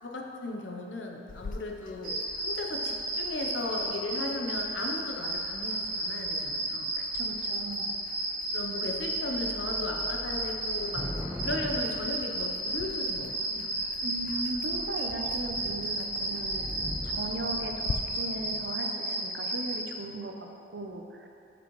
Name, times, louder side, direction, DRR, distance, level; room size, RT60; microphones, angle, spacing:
voice 1, 0.0-6.9 8.5-11.1 11.4-13.7, left 2 dB, 85° left, 1 dB, 0.8 m, -36 dB
sound 1, 1.3-17.9, left 4 dB, 45° left, 0.3 m, -47 dB
sound 2, 2.0-19.8, right 2 dB, 45° right, 1.4 m, -32 dB
voice 2, 7.0-8.1 14.0-21.3, right 2 dB, 65° right, 3 dB, 0.6 m, -38 dB
Thunder / Rain, 8.5-8.6 8.9-13.0 13.7-14.2 14.6-14.8 15.0-18.8, equal, ahead, 0.7 m, -42 dB
8.0 x 6.1 x 3.1 m, 2.6 s
head